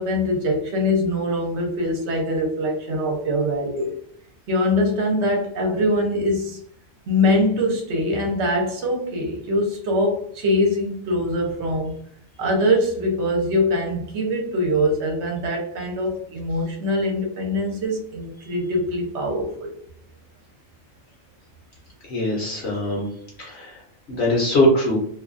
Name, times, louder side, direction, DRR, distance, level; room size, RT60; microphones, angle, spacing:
voice 1, 0.0-4.0 4.5-6.6 7.1-12.0 12.4-19.7, left 1 dB, 65° right, 1 dB, 0.9 m, -23 dB
voice 2, 22.1-23.1 23.4-23.7 24.1-25.0, left 1 dB, 60° left, -3 dB, 0.9 m, -21 dB
2.6 x 2.2 x 2.5 m, 0.64 s
omnidirectional pair, 1.4 m